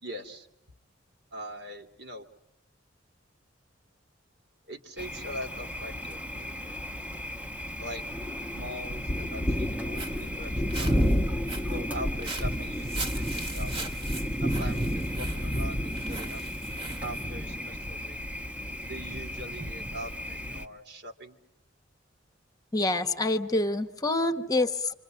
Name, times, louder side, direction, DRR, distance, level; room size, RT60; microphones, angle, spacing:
voice 1, 0.0-0.5 1.3-2.3 4.7-6.8 7.8-8.0 8.5-11.1 11.7-13.7 14.4-16.4 17.0-18.2 18.9-21.4, equal, 60° right, 5 dB, 2.7 m, -42 dB
Thunder, 5.0-20.7, equal, 10° right, 1.1 m, -32 dB
Walk footsteps, 9.6-17.3, right 2 dB, 30° right, 1.9 m, -41 dB
voice 2, 22.7-24.9, left 2 dB, 20° left, 8 dB, 1.1 m, -26 dB
28.0 x 26.5 x 7.7 m, 0.80 s
head